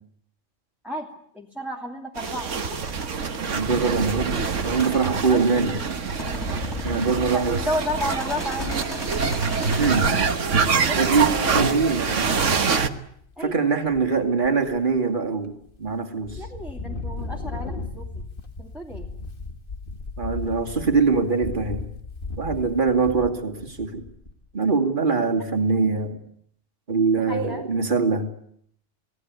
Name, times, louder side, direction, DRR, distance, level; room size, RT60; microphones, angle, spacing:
voice 1, 1.3-2.5 5.3-5.5 7.3-8.7 10.7-11.8 13.4-13.6 16.3-18.1 18.6-19.1 27.3-27.6, equal, ahead, 0 dB, 2.6 m, -32 dB
sound 1, 2.2-10.1, equal, 20° left, 5.2 m, -37 dB
sound 2, 2.2-12.9, right 5 dB, 65° right, 1.7 m, -25 dB
voice 2, 3.4-4.3 4.6-5.7 6.8-7.6 9.8-10.1 11.0-12.3 13.4-16.4 20.2-21.9 22.4-24.0 24.5-26.2 26.9-28.3, right 4 dB, 40° right, 5 dB, 2.6 m, -23 dB
Wind, 6.1-9.3 9.8-9.9 10.1-10.5 11.9-12.5 13.0-13.5 13.8-15.0 15.5-15.9 16.2-24.5, left 3 dB, 40° left, 2.0 m, -36 dB
27.5 x 18.0 x 9.6 m, 0.70 s
omnidirectional pair, 1.4 m